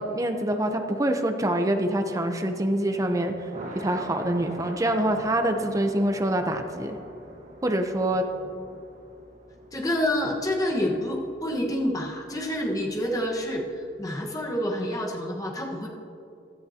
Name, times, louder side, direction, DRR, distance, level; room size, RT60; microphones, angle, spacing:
voice 1, 0.0-3.5 3.7-7.0 7.6-8.3, right 1 dB, 20° right, 5 dB, 0.8 m, -25 dB
Thunder, 2.7-14.0, right 1 dB, 45° right, 1.6 m, -45 dB
voice 2, 9.7-15.9, left 1 dB, 20° left, -1 dB, 1.4 m, -28 dB
16.0 x 11.5 x 2.9 m, 2.7 s
head